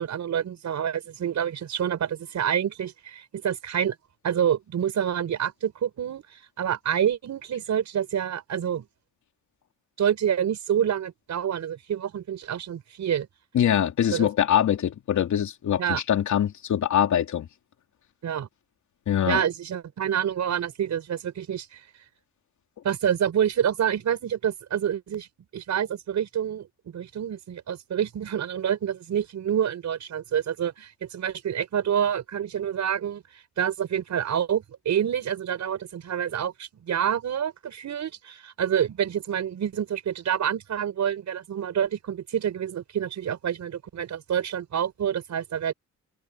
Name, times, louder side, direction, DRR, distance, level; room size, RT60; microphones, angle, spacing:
voice 1, 0.0-4.0 4.2-6.2 6.6-8.8 10.0-13.3 14.1-14.3 15.8-16.0 18.2-18.5 19.3-21.8 22.8-25.3 25.5-45.7, right 9 dB, 70° right, 5.0 m, -27 dB
voice 2, 13.5-17.5 19.1-19.4, left 10 dB, 75° left, 3.0 m, -23 dB
cardioid pair, 110°, 30 cm